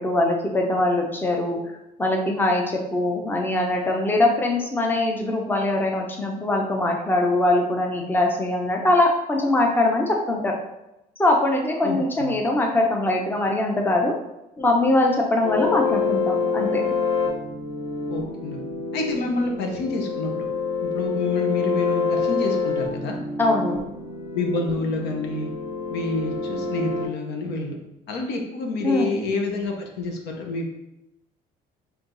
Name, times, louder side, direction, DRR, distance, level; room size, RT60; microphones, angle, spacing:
voice 1, 0.0-1.6 2.0-10.5 11.2-14.1 14.6-16.8 23.4-23.8 28.8-29.1, left 2 dB, 10° left, 1 dB, 0.7 m, -22 dB
voice 2, 11.8-12.4 18.1-18.6 18.9-20.5 20.8-23.2 24.3-25.5 25.9-27.8 28.1-30.7, left 3 dB, 80° left, 2 dB, 0.9 m, -28 dB
sound 1, 15.4-27.1, left 4 dB, 40° left, 1.3 m, -27 dB
4.5 x 2.7 x 3.8 m, 0.92 s
cardioid pair, 110°, 17 cm